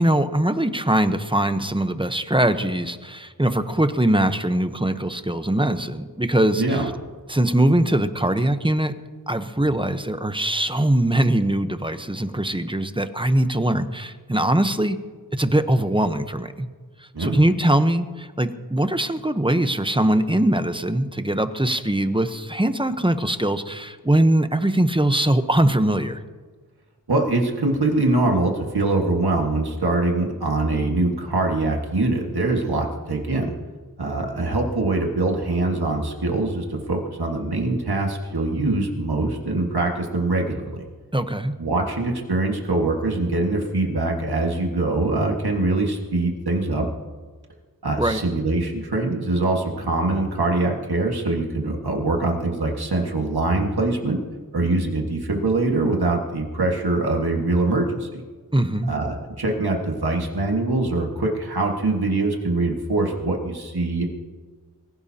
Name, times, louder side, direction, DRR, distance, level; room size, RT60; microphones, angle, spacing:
voice 1, 0.0-6.8 7.3-8.9 9.3-15.0 15.3-16.7 17.2-26.2 41.1-41.5 48.0-48.2 58.5-58.9, right 1 dB, 15° right, 9 dB, 0.9 m, -21 dB
voice 2, 6.6-6.9 17.1-17.4 27.1-33.5 34.0-40.8 41.6-46.9 47.8-54.2 54.5-58.2 58.9-64.0, right 2 dB, 90° right, 1 dB, 1.8 m, -23 dB
24.0 x 16.0 x 2.9 m, 1.5 s
wide cardioid pair, 55°, 37 cm